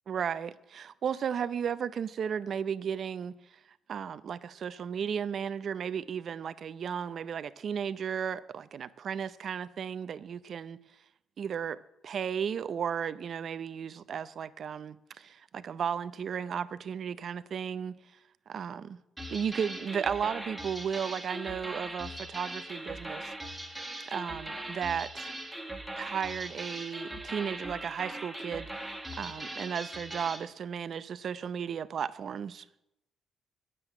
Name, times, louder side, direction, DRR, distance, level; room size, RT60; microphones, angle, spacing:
voice 1, 0.1-3.4 3.9-10.8 11.4-11.8 12.0-18.0 18.5-19.0 19.3-23.3 24.1-25.3 26.0-32.7, right 7 dB, 55° right, 0.6 m, -34 dB
sound 1, 19.2-30.5, right 1 dB, 10° right, 1.6 m, -40 dB
9.5 x 7.6 x 9.0 m
cardioid pair, 90°, 0 cm